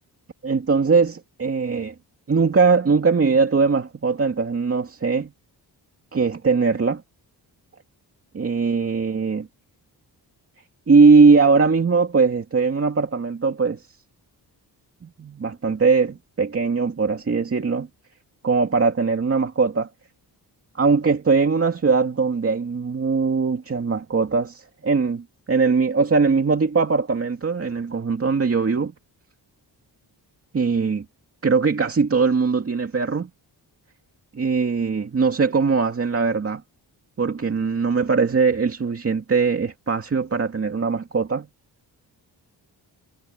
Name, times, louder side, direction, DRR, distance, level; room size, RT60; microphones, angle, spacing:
voice 1, 0.4-1.9 2.3-5.3 6.1-7.0 8.3-9.5 10.9-13.8 15.0-17.9 18.4-19.9 20.8-28.9 30.5-31.0 31.4-33.3 34.3-36.6 37.2-41.5, right 4 dB, 35° right, 2.3 m, -20 dB
wide cardioid pair, 160°, 41 cm